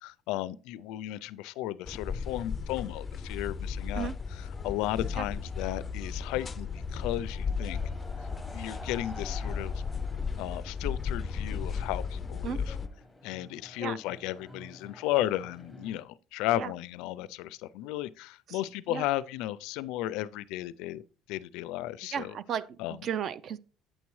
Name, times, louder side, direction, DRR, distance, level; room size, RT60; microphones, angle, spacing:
voice 1, 0.0-7.8 8.2-8.3 8.5-9.8 10.4-12.8 13.2-21.0 21.3-22.4 22.8-23.1, left 14 dB, 85° left, 0.4 m, -34 dB
sound 1, 1.9-12.9, left 5 dB, 20° left, 0.4 m, -35 dB
sound 2, 3.8-16.0, left 1 dB, 5° right, 1.0 m, -52 dB
voice 2, 22.1-23.6, right 8 dB, 40° right, 0.4 m, -34 dB
8.8 x 7.1 x 3.1 m
cardioid pair, 165°, 0 cm